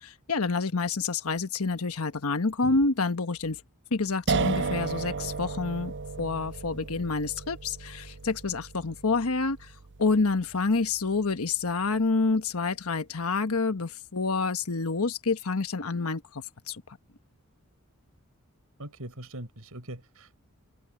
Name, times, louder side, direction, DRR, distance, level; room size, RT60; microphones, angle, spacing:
voice 1, 0.0-3.6 3.9-9.7 10.0-16.8, left 3 dB, 80° left, 1.2 m, -28 dB
sound 1, 4.3-11.2, right 4 dB, 55° right, 0.6 m, -34 dB
voice 2, 18.8-20.3, right 1 dB, 85° right, 4.4 m, -41 dB
head